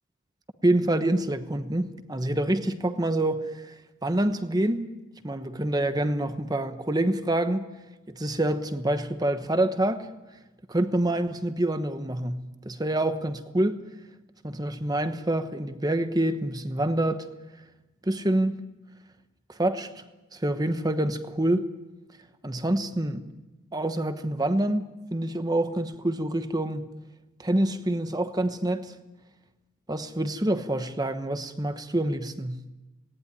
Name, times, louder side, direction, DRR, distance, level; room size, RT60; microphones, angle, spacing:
voice 1, 0.6-3.7 4.0-4.9 5.2-7.7 8.1-10.1 10.7-13.8 14.4-17.2 18.0-18.6 19.5-20.0 20.3-21.7 22.4-23.3 23.7-26.9 27.4-28.9 29.9-32.6, right 1 dB, 15° right, 1.0 m, -26 dB
18.5 x 18.0 x 9.8 m
head